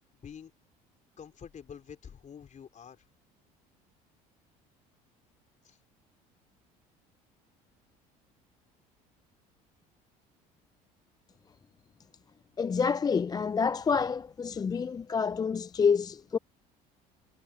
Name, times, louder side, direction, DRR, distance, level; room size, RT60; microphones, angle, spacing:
voice 1, 0.1-0.5 1.2-3.1 5.6-5.8, left 7 dB, 40° left, 3.9 m, -47 dB
voice 2, 12.6-16.4, left 6 dB, 20° left, 0.4 m, -28 dB
supercardioid pair, 75°, 19 cm